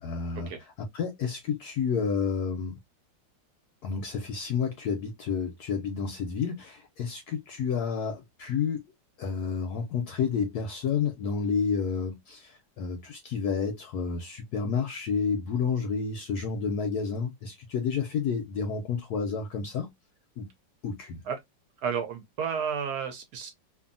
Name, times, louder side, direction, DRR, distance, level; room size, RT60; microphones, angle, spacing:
voice 1, 0.0-0.5 0.9-2.7 3.8-8.8 9.2-19.9 20.4-20.5 20.8-21.2, left 6 dB, 70° left, 1.0 m, -30 dB
voice 2, 21.8-23.5, right 7 dB, 70° right, 1.1 m, -32 dB
2.6 x 2.6 x 2.5 m
omnidirectional pair, 2.0 m